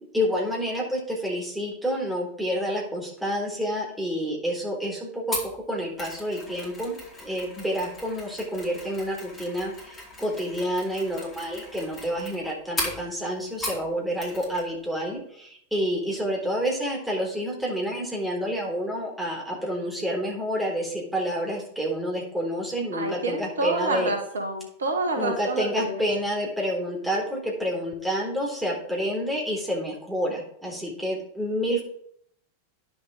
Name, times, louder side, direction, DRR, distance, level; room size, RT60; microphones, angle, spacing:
voice 1, 0.1-24.1 25.2-31.8, equal, 5° right, -2 dB, 3.7 m, -29 dB
Mechanisms, 5.3-13.9 14.2-14.7 14.9-15.1, left 1 dB, 15° left, 4.3 m, -37 dB
voice 2, 22.9-25.9, right 2 dB, 70° right, 4 dB, 1.5 m, -28 dB
10.0 x 7.1 x 5.0 m, 0.66 s
figure-of-eight pair, 90°, 0 cm